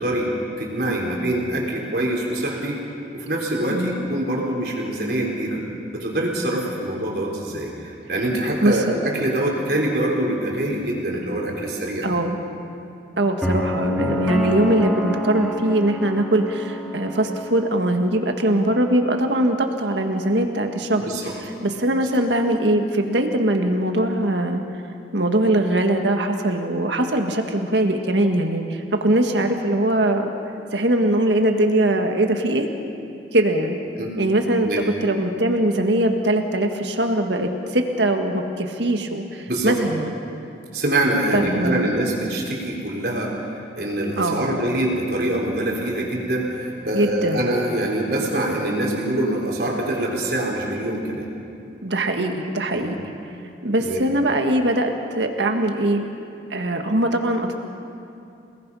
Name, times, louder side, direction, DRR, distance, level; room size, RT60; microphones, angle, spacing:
voice 1, 0.0-2.8 3.1-5.6 5.9-12.1 20.9-21.4 34.0-34.1 34.6-34.8 39.5-39.8 40.7-51.3 52.7-52.9 53.8-54.0, right 1 dB, 60° right, -2 dB, 4.4 m, -24 dB
voice 2, 12.0-12.4 13.2-24.6 25.1-30.3 30.7-32.7 33.3-33.8 34.2-34.7 35.0-40.1 41.3-41.9 44.2-44.5 46.9-47.5 51.8-53.0 53.6-56.1 56.5-57.5, right 1 dB, 80° right, 4 dB, 1.8 m, -21 dB
sound 1, 13.4-17.6, left 1 dB, 5° left, 2.1 m, -26 dB
29.0 x 19.5 x 5.7 m, 2.6 s
head